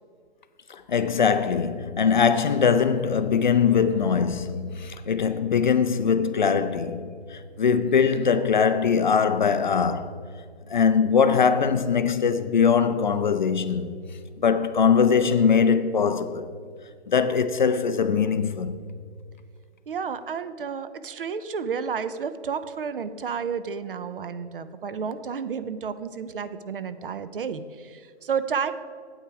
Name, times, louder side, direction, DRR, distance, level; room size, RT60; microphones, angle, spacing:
voice 1, 0.7-10.2 10.7-14.0 14.4-16.5 17.1-18.8, left 6 dB, 45° left, 0.5 m, -22 dB
voice 2, 19.9-28.7, right 6 dB, 55° right, 0.6 m, -31 dB
9.0 x 8.2 x 4.6 m
hypercardioid pair, 160°, 34 cm